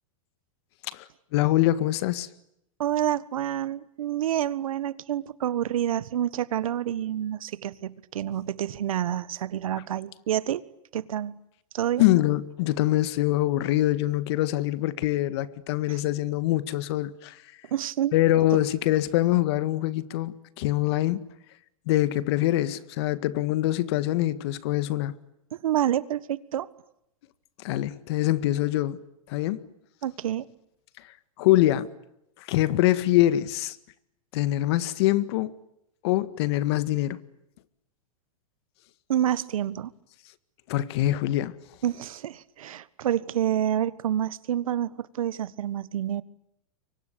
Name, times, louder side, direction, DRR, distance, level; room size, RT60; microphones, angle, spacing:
voice 1, 1.3-2.3 12.0-17.4 18.1-21.2 21.9-25.2 27.6-29.0 29.3-29.6 31.4-31.9 32.4-33.8 34.3-35.5 36.0-37.2 40.7-41.6, left 15 dB, 50° left, 1.8 m, -24 dB
voice 2, 2.8-10.6 10.9-11.4 11.7-12.0 15.9-16.0 17.7-18.1 25.5-26.7 30.0-30.5 39.1-39.9 41.8-46.2, right 11 dB, 80° right, 1.6 m, -28 dB
28.5 x 24.5 x 8.5 m
supercardioid pair, 155°, 17 cm